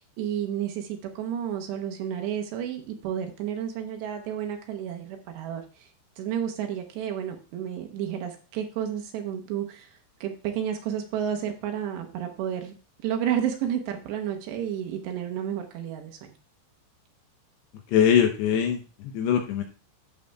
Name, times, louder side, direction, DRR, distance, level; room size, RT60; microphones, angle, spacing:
voice 1, 0.0-5.9 6.2-12.7 13.0-16.3, right 9 dB, 75° right, 4 dB, 2.9 m, -31 dB
voice 2, 17.9-19.6, left 8 dB, 80° left, 4 dB, 2.5 m, -22 dB
14.0 x 7.4 x 2.3 m, 0.35 s
omnidirectional pair, 5.5 m